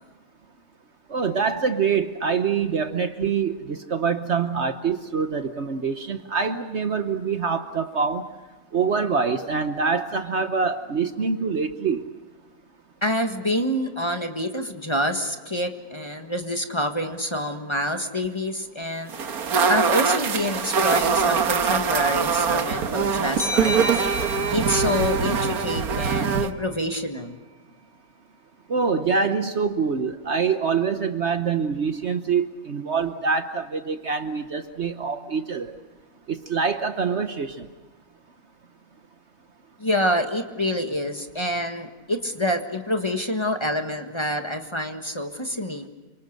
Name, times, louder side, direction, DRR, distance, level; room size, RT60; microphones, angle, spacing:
voice 1, 1.1-8.2 8.7-12.0 28.7-35.8 36.3-37.6, right 5 dB, 50° right, 9 dB, 1.2 m, -25 dB
voice 2, 13.0-19.1 19.7-24.0 24.5-27.3 39.8-45.9, equal, 20° left, 5 dB, 1.5 m, -27 dB
sound 1, 19.1-26.5, right 6 dB, 80° right, 1.7 m, -23 dB
sound 2, 23.4-26.7, right 1 dB, 10° right, 3.2 m, -33 dB
28.5 x 25.5 x 6.6 m, 1.2 s
omnidirectional pair, 1.6 m